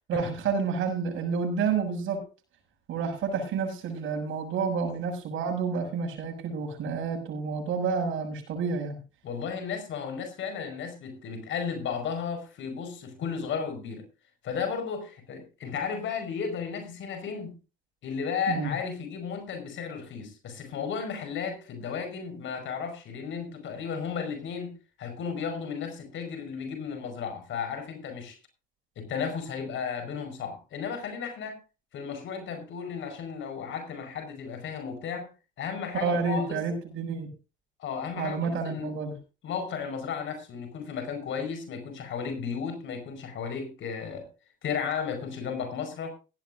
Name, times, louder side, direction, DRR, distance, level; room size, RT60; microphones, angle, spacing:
voice 1, 0.1-2.2 2.9-9.0 18.5-18.7 35.9-37.3 38.2-39.2, right 5 dB, 80° right, 6.8 m, -29 dB
voice 2, 9.2-14.0 14.4-17.6 18.0-28.4 28.9-31.6 31.9-35.3 35.6-36.6 37.8-39.1 39.4-44.3 44.6-46.1, left 6 dB, 75° left, 5.2 m, -34 dB
17.0 x 15.5 x 2.6 m
cardioid pair, 90°, 20 cm